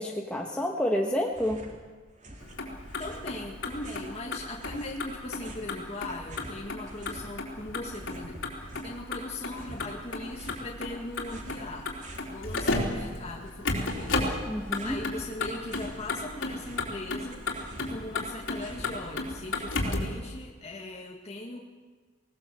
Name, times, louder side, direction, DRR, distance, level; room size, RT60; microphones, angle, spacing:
voice 1, 0.0-1.6 14.4-15.0, equal, 5° left, -1 dB, 1.4 m, -29 dB
sound 1, 1.3-1.8 2.1-4.2 4.6-7.3 7.6-9.0 9.5-10.7 11.1-12.3 12.7-14.2 14.5-16.0 16.3-20.2, right 1 dB, 40° right, 3.0 m, -47 dB
Motor vehicle (road), 2.4-20.2, left 2 dB, 80° left, 3.8 m, -34 dB
voice 2, 3.0-12.0 12.3-21.6, left 2 dB, 35° left, -1 dB, 1.8 m, -40 dB
19.5 x 19.0 x 7.7 m, 1.4 s
head